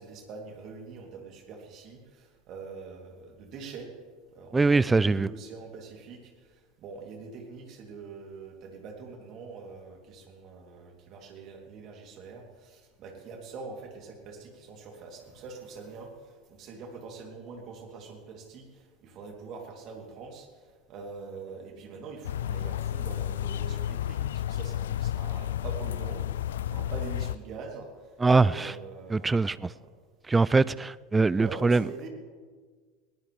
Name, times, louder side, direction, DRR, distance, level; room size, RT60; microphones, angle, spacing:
voice 1, 0.0-3.9 4.3-20.5 20.9-28.1 28.4-29.9 31.3-32.1, right 4 dB, 45° right, 2 dB, 3.1 m, -44 dB
voice 2, 4.5-5.3 28.2-28.7 29.1-29.7 30.3-31.9, right 3 dB, 15° right, 19 dB, 0.4 m, -23 dB
sound 1, 22.2-27.4, left 11 dB, 70° left, 0.4 m, -31 dB
21.5 x 18.5 x 3.4 m, 1.5 s
figure-of-eight pair, 80°, 0 cm